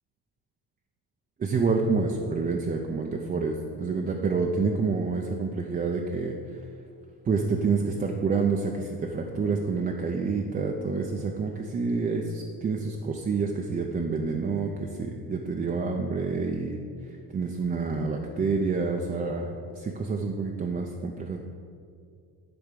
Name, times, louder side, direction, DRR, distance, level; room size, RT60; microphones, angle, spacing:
voice 1, 1.4-6.3 7.3-21.4, right 4 dB, 25° right, 1 dB, 0.4 m, -28 dB
10.0 x 3.5 x 6.7 m, 2.4 s
cardioid pair, 135°, 39 cm